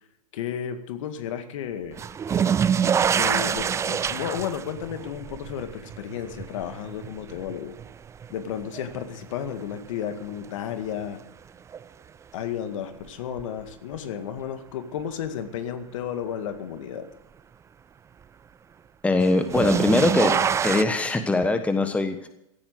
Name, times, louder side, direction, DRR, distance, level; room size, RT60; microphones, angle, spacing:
voice 1, 0.3-2.0 3.1-7.7 8.3-11.2 12.3-17.1, left 9 dB, 65° left, 8 dB, 2.0 m, -33 dB
sound 1, 2.0-9.0 9.4-10.1 11.7-11.8 13.4-13.5 19.2-20.8, right 7 dB, 15° right, 0.5 m, -25 dB
voice 2, 19.0-20.3 20.6-22.3, left 2 dB, 5° left, 8 dB, 1.3 m, -22 dB
16.5 x 8.7 x 7.8 m, 0.82 s
hypercardioid pair, 110°, 18 cm